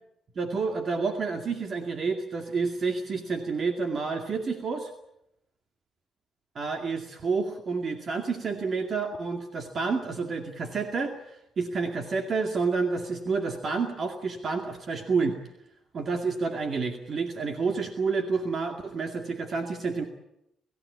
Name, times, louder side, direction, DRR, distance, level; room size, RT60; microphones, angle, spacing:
voice 1, 0.4-4.9 6.6-15.4 15.9-20.0, right 4 dB, 50° right, 4 dB, 2.3 m, -29 dB
27.5 x 15.5 x 8.5 m, 0.84 s
cardioid pair, 90°, 0 cm